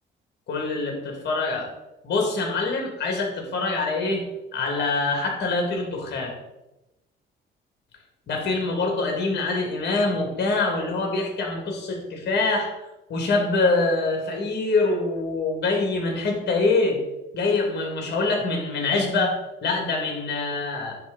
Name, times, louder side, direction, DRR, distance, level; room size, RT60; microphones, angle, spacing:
voice 1, 0.5-1.7 2.0-4.2 4.5-6.3 8.3-12.7 13.1-17.0 17.3-19.4 19.6-21.0, left 3 dB, 60° left, 1 dB, 2.1 m, -24 dB
10.0 x 3.4 x 4.0 m, 0.95 s
cardioid pair, 90°, 20 cm